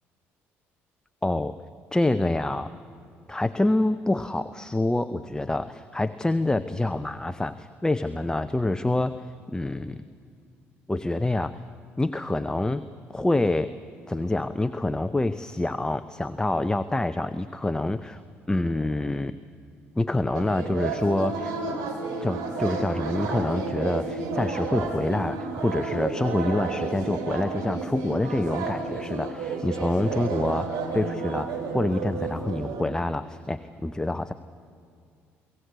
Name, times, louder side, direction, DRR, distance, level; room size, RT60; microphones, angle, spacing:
voice 1, 1.2-1.6 1.9-2.7 3.3-10.0 10.9-11.6 12.0-13.7 14.1-18.2 18.5-19.3 20.0-21.5 22.2-34.3, left 2 dB, 10° left, 11 dB, 0.7 m, -27 dB
sound 1, 20.3-32.8, right 4 dB, 70° right, 2.8 m, -31 dB
23.5 x 16.5 x 8.2 m, 2.4 s
hypercardioid pair, 50°, 7 cm